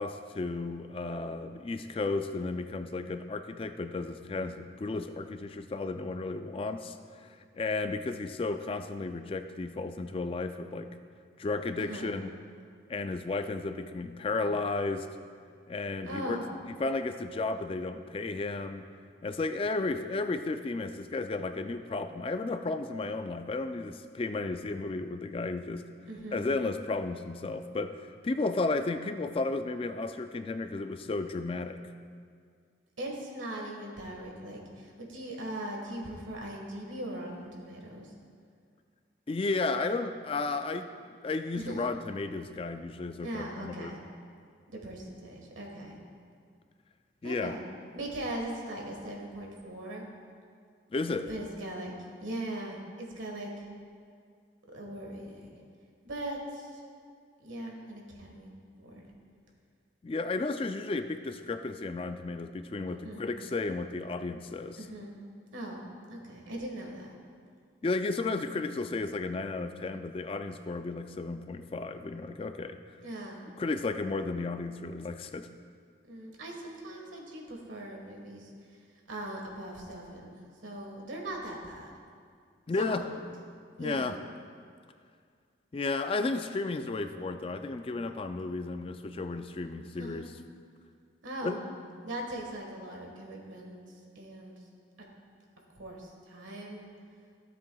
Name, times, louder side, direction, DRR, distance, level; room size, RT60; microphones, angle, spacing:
voice 1, 0.0-7.3 7.5-11.0 11.4-12.3 12.9-15.1 15.7-16.4 16.8-18.9 19.2-25.9 26.3-31.8 39.3-40.9 41.2-43.9 47.2-47.5 50.9-51.3 60.0-64.8 67.8-72.8 73.6-75.5 82.7-83.1 83.8-84.2 85.7-90.3 91.4-91.6, left 3 dB, 30° left, 8 dB, 0.3 m, -33 dB
voice 2, 11.8-12.1 16.0-16.5 26.1-26.4 33.0-38.1 41.5-41.8 43.2-44.0 44.7-46.0 47.2-47.6 47.9-50.1 51.3-51.9 52.2-53.7 54.7-55.5 56.0-56.8 57.4-59.0 63.0-63.2 64.8-65.1 65.5-65.8 66.1-67.1 73.0-73.5 76.1-78.8 79.1-81.9 82.8-83.2 83.8-84.1 89.9-90.2 91.2-91.6 92.0-93.8 94.1-94.5 95.7-96.8, right 1 dB, 90° right, 0 dB, 1.5 m, -40 dB
15.5 x 7.6 x 2.3 m, 2.1 s
head